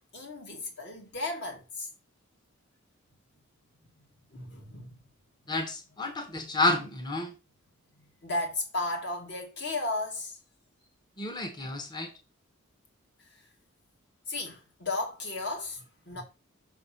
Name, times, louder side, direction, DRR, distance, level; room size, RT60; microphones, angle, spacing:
voice 1, 0.1-1.9 4.3-4.9 8.2-10.4 14.3-16.2, left 2 dB, 55° left, 1.9 m, -34 dB
voice 2, 5.5-7.3 11.2-12.1, left 2 dB, 20° left, 0.8 m, -30 dB
6.2 x 3.4 x 5.7 m
head